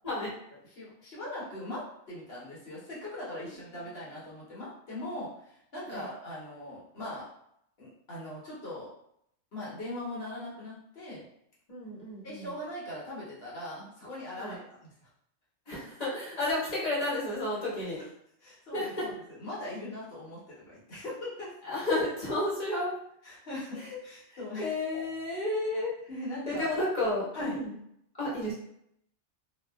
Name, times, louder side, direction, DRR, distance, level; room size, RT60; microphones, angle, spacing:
voice 1, 0.7-7.3 7.8-8.9 9.5-11.3 12.2-14.6 15.0-15.1 16.5-16.6 18.0-18.1 18.4-21.5 23.2-24.7 26.1-26.7 27.3-27.6, left 1 dB, 60° left, -7 dB, 1.2 m, -40 dB
voice 2, 11.7-12.5 14.4-14.6 15.7-18.0 18.7-19.1 21.6-22.9 23.7-24.0 24.3-25.9 26.5-27.7 28.2-28.5, left 1 dB, 35° left, -8 dB, 1.1 m, -32 dB
2.9 x 2.4 x 2.2 m, 0.73 s
omnidirectional pair, 1.2 m